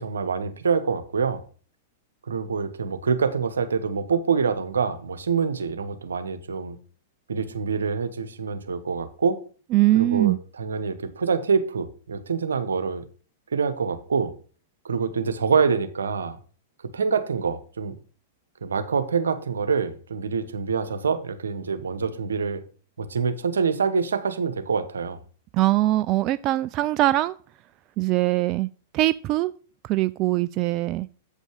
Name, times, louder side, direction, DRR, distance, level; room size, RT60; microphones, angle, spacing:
voice 1, 0.0-1.4 2.3-6.8 7.3-9.4 9.9-13.0 13.5-14.3 14.8-16.4 16.9-17.9 18.6-22.6 23.0-25.2, right 5 dB, 80° right, 1.0 m, -26 dB
voice 2, 9.7-10.4 25.5-27.3 28.0-28.7 28.9-29.5 29.8-31.1, right 16 dB, 40° right, 0.3 m, -22 dB
8.4 x 5.3 x 4.8 m
hypercardioid pair, 105°, 0 cm